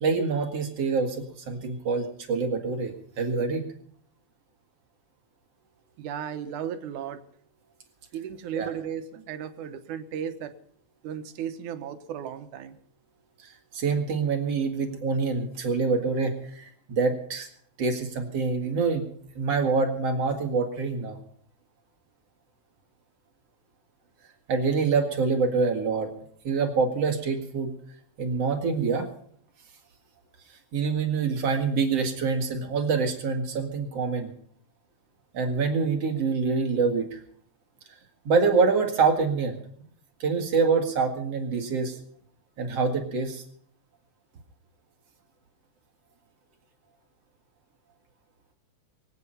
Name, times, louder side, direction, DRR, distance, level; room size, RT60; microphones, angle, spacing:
voice 1, 0.0-1.2 1.5-3.6 8.6-8.7 13.7-17.5 17.8-19.1 19.4-21.2 24.5-26.1 26.4-27.7 28.2-29.1 30.7-34.3 35.3-37.2 38.3-39.6 40.2-41.9 42.6-43.4, right 4 dB, 55° right, 4 dB, 2.8 m, -25 dB
voice 2, 6.0-7.2 8.1-10.5 11.0-12.8, right 8 dB, 80° right, 9 dB, 2.5 m, -35 dB
23.5 x 9.0 x 5.6 m, 0.62 s
omnidirectional pair, 3.5 m